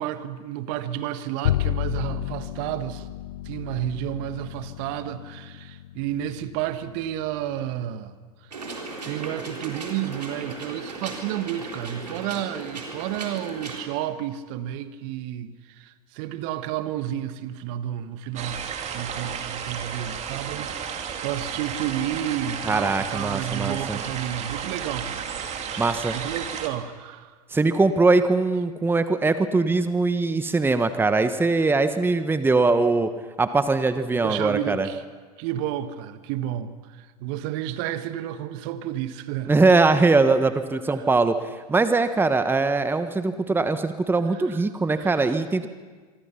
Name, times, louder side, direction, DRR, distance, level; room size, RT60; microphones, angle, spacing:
voice 1, 0.0-3.1 3.4-8.2 8.5-8.7 9.0-25.3 25.6-27.3 34.2-35.0 35.4-39.6 44.3-44.6 44.9-45.4, right 11 dB, 55° right, 11 dB, 1.5 m, -31 dB
Bowed string instrument, 1.4-7.9, left 14 dB, 70° left, 0.7 m, -32 dB
sound 1, 8.5-13.8, right 3 dB, 90° right, 3.9 m, -36 dB
sound 2, 18.4-26.7, right 7 dB, 35° right, 2.7 m, -33 dB
voice 2, 22.6-24.0 25.8-26.2 27.5-33.1 33.4-34.9 39.5-45.7, right 3 dB, 10° right, 10 dB, 1.2 m, -21 dB
26.5 x 23.5 x 5.8 m, 1.5 s
hypercardioid pair, 90°, 20 cm